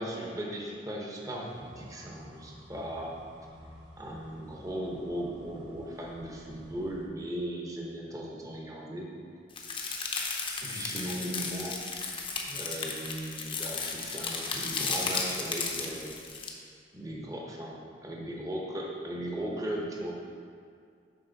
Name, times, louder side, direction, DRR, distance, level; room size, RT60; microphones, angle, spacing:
voice 1, 0.0-3.2 4.0-9.1 10.6-11.8 12.5-16.2 16.9-20.1, right 1 dB, 20° right, -2 dB, 1.0 m, -37 dB
sound 1, 1.5-7.1, equal, 70° right, 1.5 m, -52 dB
sound 2, 9.6-16.5, left 4 dB, 30° left, 0.7 m, -34 dB
7.8 x 5.4 x 4.0 m, 2.2 s
head